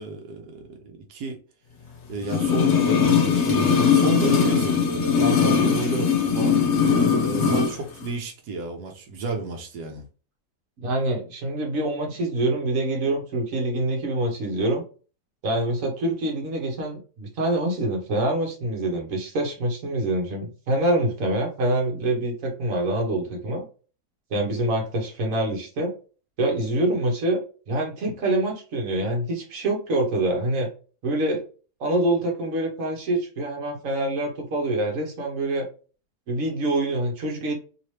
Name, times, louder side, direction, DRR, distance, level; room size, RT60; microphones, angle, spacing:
voice 1, 0.0-1.4 2.1-6.6 7.2-10.0, right 3 dB, 90° right, 1.3 m, -31 dB
sound 1, 2.2-7.7 8.0-8.1, left 6 dB, 55° left, 1.0 m, -20 dB
voice 2, 10.8-14.8 15.4-23.6 24.3-25.9 26.4-30.7 31.0-31.4 31.8-35.7 36.3-37.5, right 1 dB, 60° right, 1.4 m, -25 dB
3.1 x 2.8 x 3.2 m
omnidirectional pair, 1.6 m